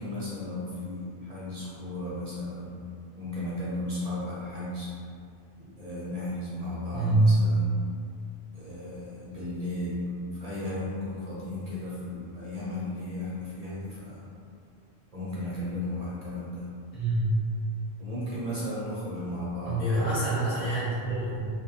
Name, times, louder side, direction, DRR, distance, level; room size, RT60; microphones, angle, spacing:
voice 1, 0.0-2.8 3.1-4.9 5.8-7.9 8.5-14.2 15.1-16.7 18.0-19.9, left 1 dB, 55° right, -8 dB, 0.4 m, -35 dB
voice 2, 6.9-7.3 16.9-17.3 19.6-21.4, right 1 dB, 55° left, -12 dB, 1.1 m, -26 dB
2.4 x 2.1 x 2.7 m, 2.4 s
omnidirectional pair, 1.1 m